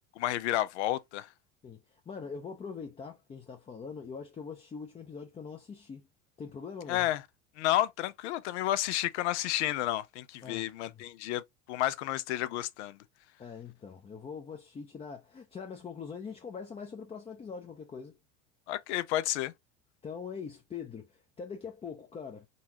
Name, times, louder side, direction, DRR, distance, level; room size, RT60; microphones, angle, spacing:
voice 1, 0.2-1.3 6.9-7.2 7.6-11.4 11.7-13.0 18.7-19.5, left 14 dB, 80° left, 0.6 m, -31 dB
voice 2, 1.6-6.1 6.4-7.1 10.4-11.0 13.4-18.2 20.0-22.5, left 6 dB, 20° left, 0.6 m, -43 dB
4.0 x 2.3 x 2.7 m
supercardioid pair, 110°, 34 cm